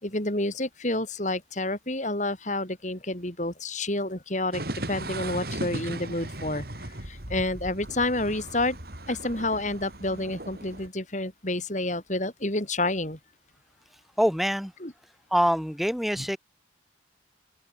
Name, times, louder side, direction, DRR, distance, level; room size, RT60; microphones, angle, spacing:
voice 1, 0.0-4.6 4.9-6.7 7.0-8.8 9.1-13.2 14.8-14.9 16.2-16.3, left 2 dB, 40° left, 4.0 m, -29 dB
sound 1, 4.5-10.9, right 1 dB, 55° right, 4.3 m, -37 dB
voice 2, 14.2-14.7 15.3-16.4, equal, ahead, 1.2 m, -24 dB
open air
head